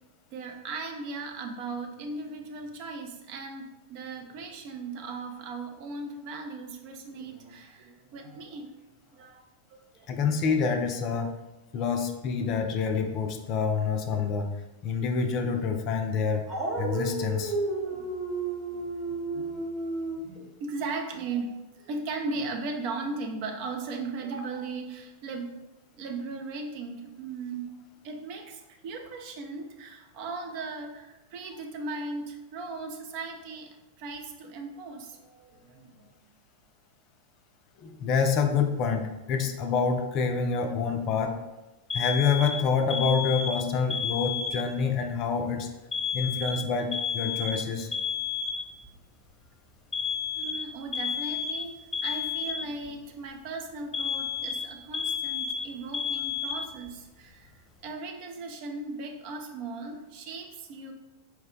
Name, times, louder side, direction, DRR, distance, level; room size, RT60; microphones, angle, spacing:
voice 1, 0.3-8.8 9.1-10.2 11.7-12.1 17.8-18.1 18.8-19.7 20.1-25.5 25.9-27.7 28.0-36.1 50.3-57.5 57.8-60.9, right 3 dB, 45° right, 3 dB, 0.5 m, -38 dB
voice 2, 10.1-11.3 11.7-14.5 14.8-16.4 16.8-17.5 37.8-41.4 41.9-45.7 46.1-47.9, left 5 dB, 40° left, 5 dB, 0.4 m, -27 dB
Dog, 16.5-20.2, right 3 dB, 30° right, 0.9 m, -32 dB
Alarm, 41.9-44.9 45.9-48.9 49.9-52.9 53.9-56.9, left 6 dB, 10° left, 1.1 m, -31 dB
4.5 x 2.1 x 3.6 m, 1.0 s
figure-of-eight pair, 90°, 0 cm